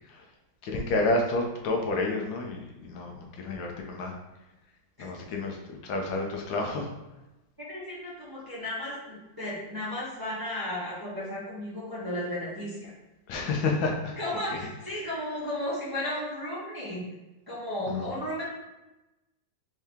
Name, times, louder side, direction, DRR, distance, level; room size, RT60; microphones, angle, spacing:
voice 1, 0.6-4.1 5.0-6.9 13.3-14.2 14.5-14.6 17.9-18.1, left 2 dB, 80° left, 1 dB, 1.4 m, -30 dB
voice 2, 7.7-12.9 14.2-17.0 17.5-18.4, left 1 dB, 15° right, -9 dB, 0.8 m, -34 dB
4.5 x 2.8 x 3.4 m, 1.0 s
omnidirectional pair, 2.1 m